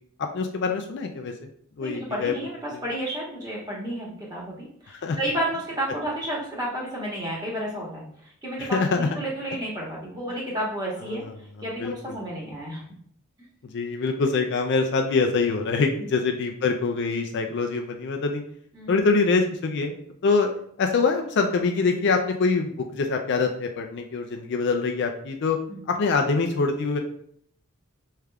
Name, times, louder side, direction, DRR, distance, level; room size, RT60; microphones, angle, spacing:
voice 1, 0.2-1.5 1.8-2.3 2.7-2.8 4.9-5.2 8.6-9.1 11.1-11.2 11.8-12.2 13.7-18.4 18.9-20.0 20.2-20.5 20.8-25.6 25.9-27.0, left 4 dB, 50° left, 4 dB, 0.4 m, -24 dB
voice 2, 1.8-11.2 11.6-12.8 16.0-16.1 18.7-19.0 25.7-25.8, right 1 dB, 20° right, -5 dB, 1.1 m, -31 dB
4.9 x 3.3 x 2.3 m, 0.65 s
head